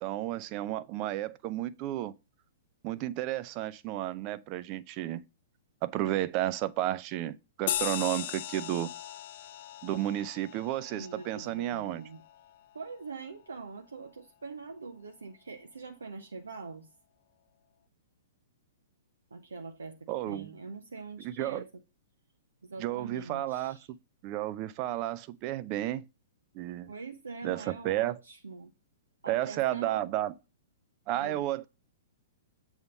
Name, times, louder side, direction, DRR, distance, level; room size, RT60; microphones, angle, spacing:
voice 1, 0.0-2.1 2.8-5.2 5.8-8.9 9.8-12.0 20.1-20.5 21.2-21.6 22.8-23.8 24.2-26.0 26.5-26.9 27.4-28.2 29.3-30.3 31.1-31.7, right 14 dB, 35° right, 0.5 m, -32 dB
sound 1, 7.7-12.6, left 12 dB, 50° left, 0.4 m, -38 dB
voice 2, 10.9-12.2 12.7-16.9 19.3-21.7 22.6-23.9 26.9-28.7 29.2-30.1 31.1-31.5, right 4 dB, 75° right, 0.8 m, -43 dB
8.0 x 3.5 x 5.4 m
figure-of-eight pair, 110°, 0 cm